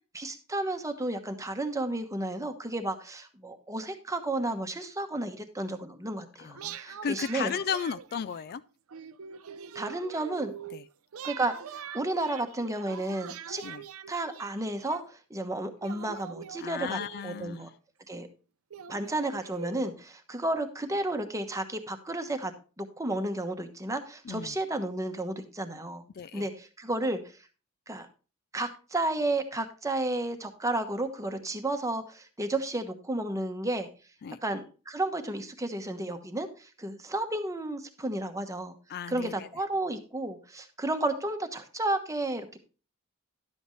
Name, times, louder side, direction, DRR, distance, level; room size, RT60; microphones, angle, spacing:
voice 1, 0.1-7.5 9.7-10.5 11.2-13.6 14.1-17.7 18.1-18.3 18.9-22.5 22.8-26.0 26.3-27.2 27.9-28.1 28.5-33.9 34.4-38.7 39.1-42.6, right 2 dB, 15° right, 1.1 m, -32 dB
voice 2, 6.4-8.6 10.7-10.8 13.6-13.9 16.6-17.7 24.2-24.6 26.1-26.5 34.2-34.4 38.9-39.5, left 7 dB, 50° left, 0.3 m, -35 dB
sound 1, 6.5-8.5 8.9-10.8 11.1-15.0 15.8-17.5 18.2-18.3 18.7-19.9, right 7 dB, 85° right, 0.6 m, -43 dB
11.5 x 7.9 x 3.1 m
head